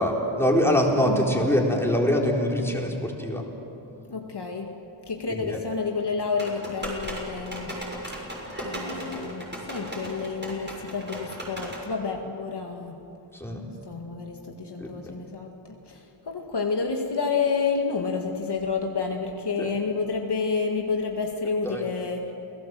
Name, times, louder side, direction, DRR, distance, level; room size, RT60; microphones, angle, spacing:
voice 1, 0.0-3.5 5.3-5.6 13.3-13.7 14.8-15.1 19.6-19.7 21.6-21.8, equal, 5° left, -1 dB, 4.1 m, -24 dB
voice 2, 1.0-1.5 4.1-4.8 5.1-7.8 8.6-13.0 13.9-22.3, left 5 dB, 55° left, 2 dB, 2.0 m, -29 dB
sound 1, 6.4-11.8, equal, 20° right, 6.8 m, -36 dB
28.5 x 17.5 x 7.8 m, 2.9 s
wide cardioid pair, 75°, 47 cm